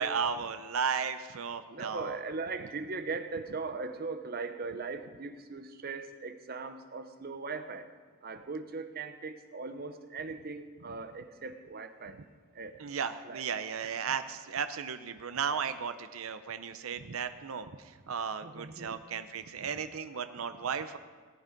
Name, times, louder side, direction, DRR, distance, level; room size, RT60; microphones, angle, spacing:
voice 1, 0.0-2.2 12.2-12.3 12.8-21.0, right 6 dB, 70° right, 10 dB, 0.6 m, -35 dB
voice 2, 1.7-7.9 8.2-12.2 12.5-12.8 13.3-13.4 13.8-13.9 18.4-19.0, right 4 dB, 45° right, 9 dB, 0.8 m, -39 dB
17.0 x 9.3 x 5.2 m, 1.5 s
head